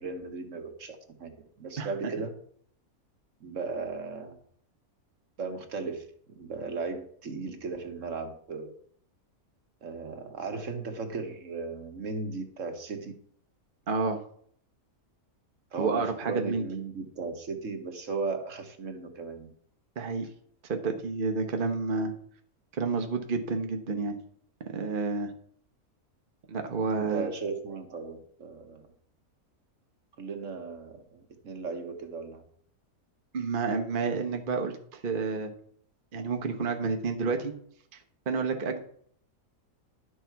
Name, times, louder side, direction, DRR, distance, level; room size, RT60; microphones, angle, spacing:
voice 1, 0.0-2.4 3.4-4.4 5.4-6.0 6.3-8.7 9.8-13.1 15.7-19.5 27.0-28.8 30.2-32.5, right 4 dB, 60° right, 6 dB, 1.5 m, -36 dB
voice 2, 13.9-14.2 15.8-16.7 20.0-20.2 20.7-22.1 22.7-24.2 24.7-25.3 26.5-27.3 33.3-35.5 36.1-37.5 37.9-38.0 38.3-38.8, right 4 dB, 40° right, 4 dB, 1.0 m, -29 dB
11.5 x 6.5 x 4.6 m, 0.62 s
omnidirectional pair, 1.6 m